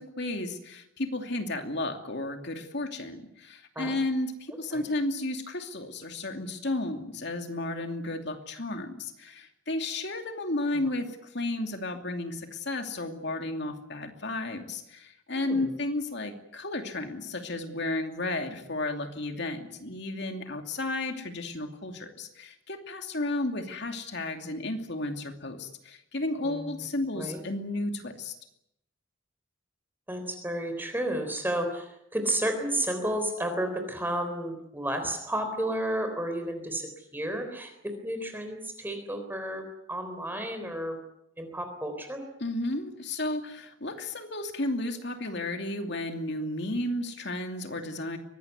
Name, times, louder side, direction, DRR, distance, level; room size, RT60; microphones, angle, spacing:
voice 1, 0.0-28.3 42.4-48.2, left 2 dB, 55° left, 5 dB, 2.7 m, -33 dB
voice 2, 15.3-15.7 26.4-26.7 27.1-27.4 30.1-37.7 38.0-39.6 39.9-41.0 41.4-42.2, right 1 dB, 10° right, 6 dB, 3.8 m, -32 dB
23.5 x 18.5 x 9.5 m, 0.80 s
head